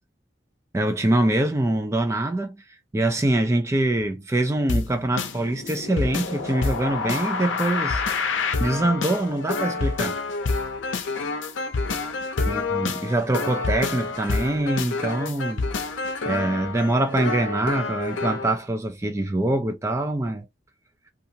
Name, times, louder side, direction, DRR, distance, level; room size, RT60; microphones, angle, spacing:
voice 1, 0.7-2.6 2.9-8.0 8.6-10.2 12.5-15.7 16.3-20.4, right 1 dB, 15° right, 0.3 m, -24 dB
sound 1, 4.7-18.5, left 4 dB, 90° left, 0.5 m, -28 dB
2.7 x 2.3 x 2.7 m
head